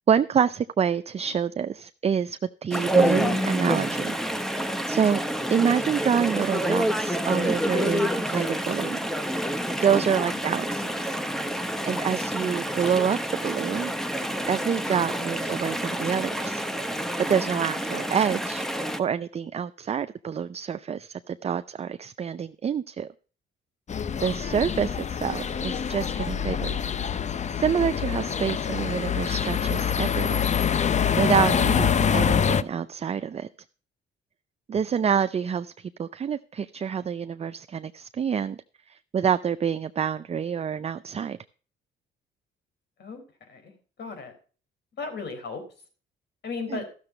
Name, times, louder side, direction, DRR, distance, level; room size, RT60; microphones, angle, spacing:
voice 1, 0.1-4.1 4.5-5.2 5.5-9.0 9.8-11.2 11.5-13.9 14.5-16.6 17.2-18.7 19.0-23.1 24.2-26.8 27.5-30.5 31.2-33.5 34.7-41.4 46.7-46.8, right 7 dB, 30° right, 0.5 m, -27 dB
Chatter / Stream, 2.7-19.0, equal, ahead, 1.0 m, -28 dB
sound 1, 23.9-32.6, left 7 dB, 35° left, 0.6 m, -25 dB
voice 2, 43.0-44.3 45.0-45.6 46.4-46.9, left 4 dB, 60° left, 4.0 m, -37 dB
14.0 x 6.7 x 5.0 m
cardioid pair, 90°, 20 cm